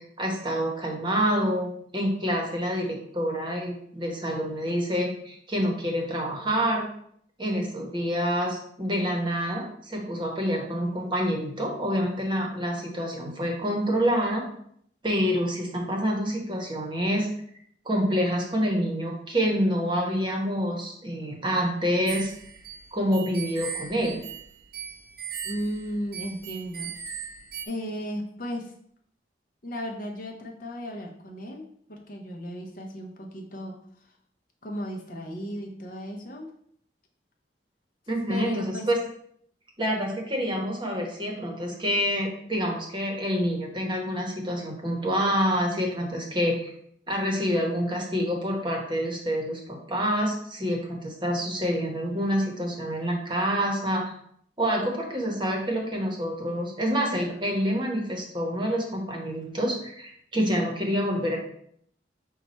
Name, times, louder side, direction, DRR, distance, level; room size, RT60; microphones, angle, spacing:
voice 1, 0.2-6.9 7.4-14.4 15.0-17.3 17.8-22.3 22.9-24.2 38.1-39.0 39.8-46.7 47.1-54.1 54.6-61.4, equal, 25° right, 0 dB, 0.9 m, -27 dB
sound 1, 22.1-27.7, right 8 dB, 55° right, 0.4 m, -38 dB
voice 2, 25.4-26.9 27.6-28.7 29.6-31.6 31.9-34.1 34.6-36.5 38.3-38.9, equal, 50° left, 1 dB, 0.7 m, -35 dB
5.6 x 2.3 x 4.1 m, 0.66 s
head